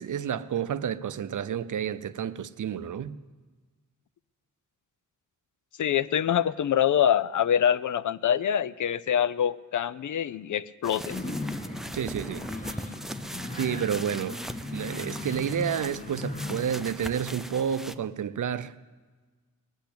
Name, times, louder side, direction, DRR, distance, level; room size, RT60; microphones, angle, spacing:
voice 1, 0.0-3.2 11.9-12.8 13.6-14.4 14.7-18.7, right 8 dB, 70° right, 0.6 m, -30 dB
voice 2, 5.8-11.2, left 9 dB, 70° left, 0.5 m, -25 dB
sound 1, 10.8-18.0, equal, ahead, 0.5 m, -40 dB
sound 2, 11.1-16.6, left 2 dB, 25° left, 1.6 m, -37 dB
20.0 x 8.1 x 8.6 m
wide cardioid pair, 115°, 32 cm